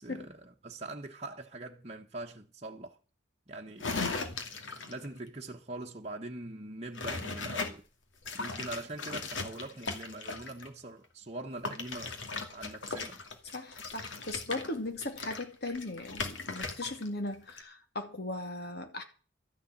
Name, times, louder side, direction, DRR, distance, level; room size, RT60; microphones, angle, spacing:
voice 1, 0.0-3.0 3.5-4.0 4.8-7.9 8.3-12.1 12.5-13.2, right 2 dB, 35° right, 1.2 m, -43 dB
sound 1, 3.8-5.1 6.9-7.7 8.2-10.7 11.6-17.1 17.3-17.6, left 4 dB, 85° left, 2.4 m, -38 dB
voice 2, 13.5-19.0, left 2 dB, 55° left, 2.7 m, -38 dB
13.5 x 6.8 x 9.7 m
head